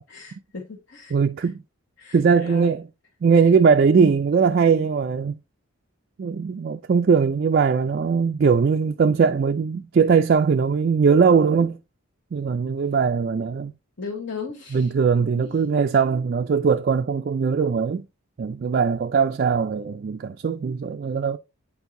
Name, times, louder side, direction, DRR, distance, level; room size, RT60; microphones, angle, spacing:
voice 1, 0.1-1.5 2.0-2.7 3.4-3.5 14.0-14.9 15.2-15.5, left 4 dB, 55° left, 1.1 m, -37 dB
voice 2, 1.1-1.6 2.1-2.9 3.2-5.4 6.2-11.8 12.3-13.7 14.7-18.0 18.4-21.4, right 5 dB, 45° right, 0.3 m, -20 dB
8.7 x 4.5 x 2.6 m
head